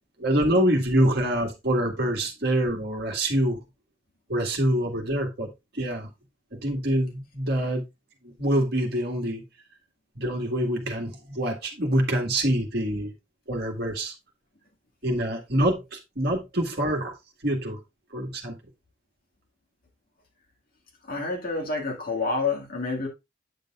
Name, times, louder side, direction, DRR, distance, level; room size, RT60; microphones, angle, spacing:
voice 1, 0.2-3.6 4.3-6.1 6.5-7.8 8.2-9.4 10.2-13.1 13.5-14.1 15.0-17.1 17.4-17.8 18.1-18.6, right 1 dB, 50° right, 1.9 m, -25 dB
voice 2, 21.0-23.1, left 3 dB, 45° left, 2.1 m, -28 dB
9.1 x 6.7 x 2.5 m
head